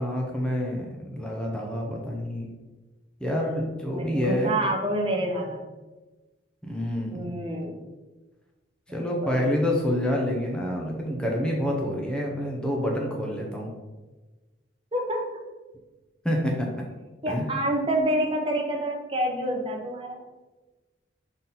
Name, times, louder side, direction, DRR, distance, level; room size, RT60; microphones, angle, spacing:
voice 1, 0.0-2.5 3.2-4.5 6.6-7.2 8.9-13.7 16.2-16.8 17.3-17.5, equal, 5° left, -1 dB, 0.8 m, -27 dB
voice 2, 3.9-5.6 7.1-7.8 8.9-9.4 14.9-15.3 17.2-20.2, right 1 dB, 30° right, 1 dB, 0.9 m, -28 dB
5.9 x 4.0 x 4.1 m, 1.2 s
head